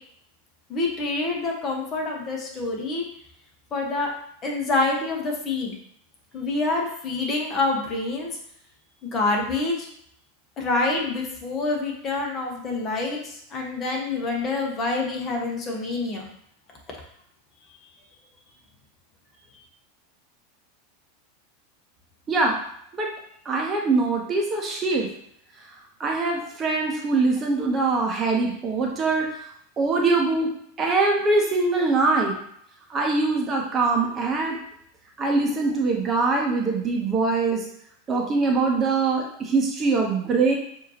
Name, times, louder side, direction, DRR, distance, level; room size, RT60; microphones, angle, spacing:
voice 1, 0.7-3.0 3.7-4.1 4.4-5.8 6.3-8.4 9.0-9.9 10.6-16.3, left 3 dB, 30° left, 0 dB, 1.2 m, -26 dB
voice 2, 23.4-25.1 26.0-29.3 29.8-30.5 30.8-32.4 32.9-34.6 35.2-37.6 38.1-40.5, right 3 dB, 25° right, 0 dB, 0.9 m, -23 dB
6.4 x 2.8 x 2.9 m, 0.68 s
figure-of-eight pair, 85°, 0 cm